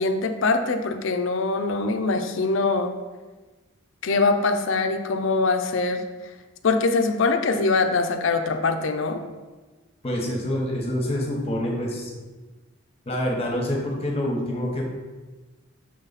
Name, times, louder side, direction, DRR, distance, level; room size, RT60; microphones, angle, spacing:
voice 1, 0.0-2.9 4.0-6.0 6.6-9.2, left 3 dB, 65° left, 7 dB, 0.5 m, -23 dB
voice 2, 10.0-12.1 13.1-14.9, left 1 dB, 30° left, 0 dB, 1.0 m, -26 dB
6.4 x 4.0 x 4.0 m, 1.3 s
head